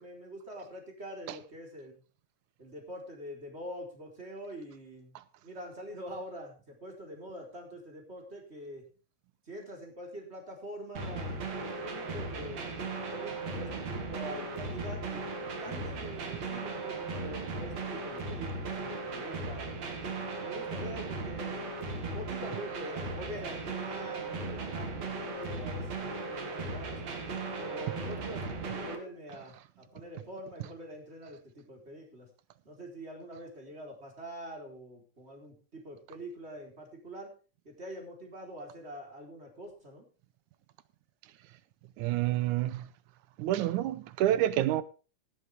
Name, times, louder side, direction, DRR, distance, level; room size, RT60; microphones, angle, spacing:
voice 1, 0.0-2.0 2.6-8.8 9.5-12.7 13.1-19.7 20.4-27.0 27.6-32.3 32.6-37.3 37.6-40.1, equal, 20° right, 4.3 m, -45 dB
sound 1, 11.0-29.0, right 3 dB, 60° right, 3.4 m, -37 dB
voice 2, 42.0-42.9 43.4-44.8, right 13 dB, 85° right, 2.2 m, -28 dB
17.5 x 9.7 x 3.6 m
omnidirectional pair, 3.5 m